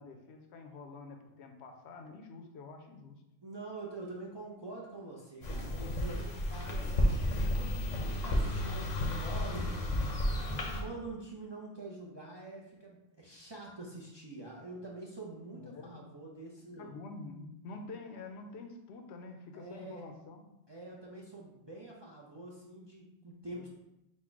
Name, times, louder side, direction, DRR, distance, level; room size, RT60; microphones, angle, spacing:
voice 1, 0.0-3.2 15.6-16.0 16.8-20.4 23.5-23.7, left 3 dB, 80° left, 5 dB, 0.9 m, -47 dB
voice 2, 3.4-10.0 10.5-16.9 19.5-20.1 20.7-23.7, right 2 dB, 35° right, -3 dB, 0.4 m, -46 dB
sound 1, 5.4-10.8, left 1 dB, 45° left, 0.7 m, -32 dB
4.3 x 2.2 x 4.5 m, 0.87 s
omnidirectional pair, 1.1 m